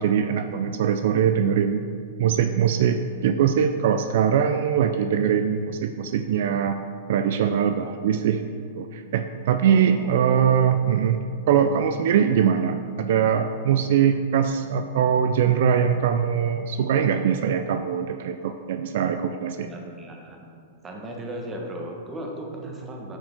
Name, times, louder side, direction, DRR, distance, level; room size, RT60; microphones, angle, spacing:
voice 1, 0.0-1.8 2.2-6.8 7.1-19.7, right 8 dB, 65° right, 8 dB, 0.3 m, -22 dB
voice 2, 9.6-10.6 19.5-20.5 20.8-23.2, right 1 dB, 20° right, 1 dB, 1.3 m, -36 dB
8.6 x 6.2 x 3.7 m, 2.2 s
hypercardioid pair, 125°, 0 cm